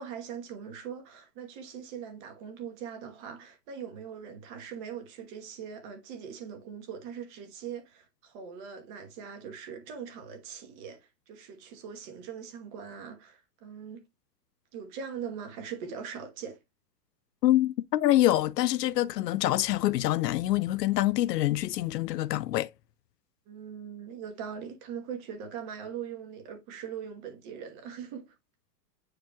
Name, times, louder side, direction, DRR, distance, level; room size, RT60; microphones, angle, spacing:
voice 1, 0.0-14.0 14.7-16.6 23.5-28.3, right 7 dB, 30° right, 1.2 m, -41 dB
voice 2, 17.4-22.7, left 14 dB, 75° left, 0.6 m, -25 dB
8.9 x 4.7 x 2.2 m
hypercardioid pair, 155°, 49 cm